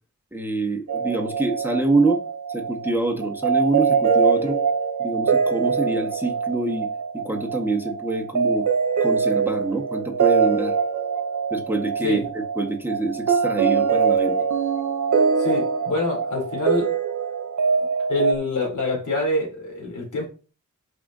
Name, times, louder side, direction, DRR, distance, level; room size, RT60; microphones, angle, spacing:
voice 1, 0.3-2.2 2.5-4.6 5.0-6.9 7.1-8.7 9.0-10.8 11.5-14.4, right 2 dB, 5° right, 1.5 m, -25 dB
sound 1, 0.9-18.3, right 5 dB, 75° right, 1.0 m, -23 dB
voice 2, 15.4-16.9 18.1-20.3, left 2 dB, 85° left, 3.4 m, -25 dB
11.0 x 5.1 x 2.8 m
wide cardioid pair, 70°, 30 cm